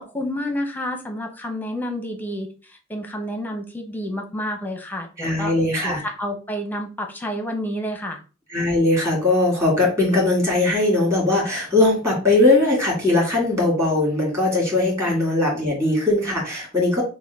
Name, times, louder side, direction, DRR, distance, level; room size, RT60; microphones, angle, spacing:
voice 1, 0.0-5.5 5.8-8.2 15.0-15.2, equal, 10° left, 4 dB, 0.9 m, -29 dB
voice 2, 5.2-6.0 8.5-17.0, left 2 dB, 15° right, -3 dB, 2.4 m, -20 dB
6.4 x 2.3 x 3.5 m, 0.34 s
head